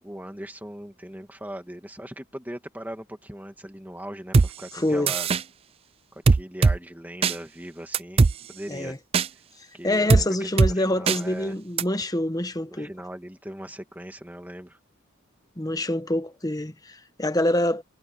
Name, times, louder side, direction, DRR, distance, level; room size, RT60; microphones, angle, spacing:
voice 1, 0.0-5.3 6.1-9.0 9.7-11.6 12.6-14.8, right 1 dB, 10° right, 2.2 m, -39 dB
sound 1, 4.3-4.5 5.1-5.4 6.3-6.8 7.2-7.4 7.9-8.3 9.1-9.3 10.1-10.2 10.6-10.7 11.1-11.2 11.8-11.9, right 4 dB, 25° right, 0.3 m, -18 dB
voice 2, 4.7-5.1 8.7-9.0 9.8-12.9 15.6-17.8, left 1 dB, 15° left, 1.1 m, -26 dB
head